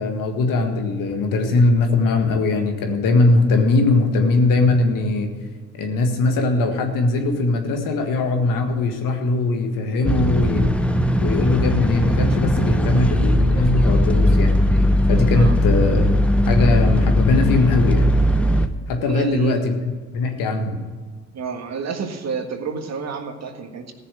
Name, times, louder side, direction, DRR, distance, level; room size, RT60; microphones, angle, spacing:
voice 1, 0.0-5.3 5.8-10.7 11.2-14.6 15.1-16.1 16.5-18.1 18.9-19.8 20.1-20.9, left 3 dB, 75° left, 4 dB, 1.7 m, -20 dB
sound 1, 10.0-18.7, left 1 dB, 5° left, 0.9 m, -18 dB
voice 2, 19.1-19.8 21.3-23.9, right 5 dB, 50° right, 5 dB, 1.7 m, -29 dB
15.0 x 6.8 x 7.5 m, 1.4 s
supercardioid pair, 65°, 33 cm